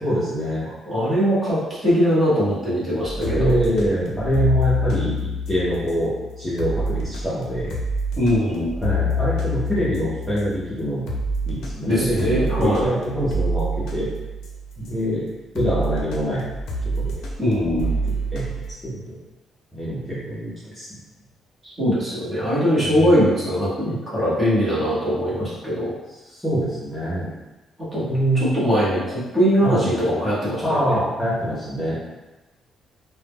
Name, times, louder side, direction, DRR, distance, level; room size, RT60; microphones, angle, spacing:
voice 1, 0.0-0.7 3.3-7.8 8.8-11.1 11.4-14.1 14.8-15.3 15.5-16.5 16.8-17.2 18.0-18.5 18.8-19.2 19.7-20.9 23.0-23.1 26.3-27.3 28.1-28.5 29.6-29.8 30.6-32.0, equal, 5° left, -10 dB, 0.5 m, -24 dB
voice 2, 0.8-3.6 8.2-8.7 11.8-12.8 17.4-18.0 21.6-26.0 27.9-28.1 28.5-30.9, equal, 20° right, -9 dB, 0.8 m, -21 dB
sound 1, 3.0-15.0 15.6-18.7, equal, 75° left, 0.4 m, -27 dB
2.1 x 2.1 x 3.3 m, 1.1 s
cardioid pair, 175°, 0 cm